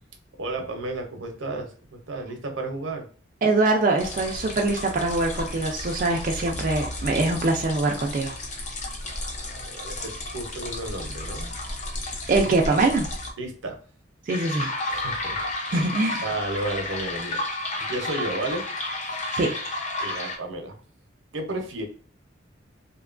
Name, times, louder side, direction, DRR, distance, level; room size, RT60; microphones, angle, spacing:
voice 1, 0.4-3.1 9.0-11.5 12.3-12.8 13.4-13.8 14.9-15.9 16.2-17.4 17.8-18.7 19.0-19.2 20.0-20.8 21.3-21.9, right 2 dB, 80° right, 4 dB, 0.6 m, -33 dB
voice 2, 3.4-8.4 12.3-13.1 14.3-14.7 15.7-16.3 19.3-19.6, right 2 dB, 40° right, 1 dB, 0.3 m, -23 dB
sound 1, 4.0-13.3 14.3-20.4, left 2 dB, 35° left, 0.5 m, -32 dB
2.7 x 2.2 x 2.4 m, 0.42 s
head